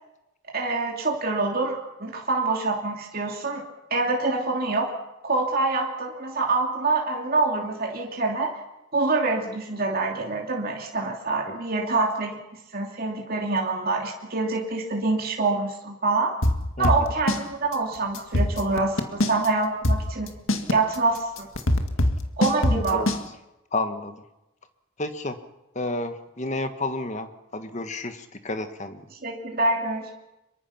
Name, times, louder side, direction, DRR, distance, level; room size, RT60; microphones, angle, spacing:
voice 1, 0.5-3.6 3.9-4.9 5.2-8.6 8.9-12.4 12.7-16.3 16.8-20.3 20.7-21.5 22.4-23.1 29.2-30.1, right 3 dB, 45° right, 0 dB, 2.9 m, -26 dB
sound 1, 16.4-17.4 17.7-17.8 18.2-19.5 19.8-23.2, left 1 dB, 65° left, 1.9 m, -22 dB
voice 2, 22.7-23.1 23.7-24.2 25.0-25.4 25.7-29.0, left 2 dB, 35° left, 8 dB, 1.5 m, -31 dB
25.0 x 23.0 x 5.9 m, 0.96 s
head